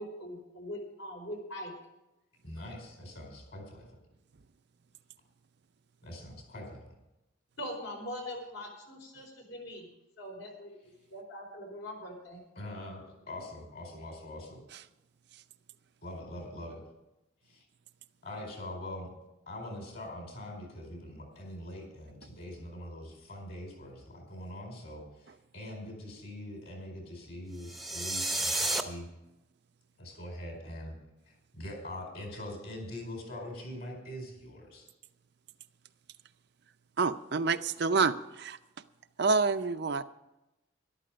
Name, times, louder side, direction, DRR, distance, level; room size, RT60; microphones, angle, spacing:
voice 1, 0.0-1.7 7.6-9.9 10.2-10.7 11.1-12.4, equal, 65° left, 0 dB, 4.6 m, -41 dB
voice 2, 2.4-4.0 6.0-6.8 12.5-14.6 16.0-16.8 17.4-17.7 18.2-19.1 19.5-29.1 30.0-30.9 31.3-34.9, left 1 dB, 50° left, 2 dB, 4.8 m, -43 dB
sound 1, 27.6-28.8, right 1 dB, ahead, 0.8 m, -31 dB
voice 3, 37.0-38.6 39.2-40.0, right 4 dB, 50° right, 10 dB, 0.5 m, -28 dB
13.0 x 12.0 x 5.1 m, 0.96 s
head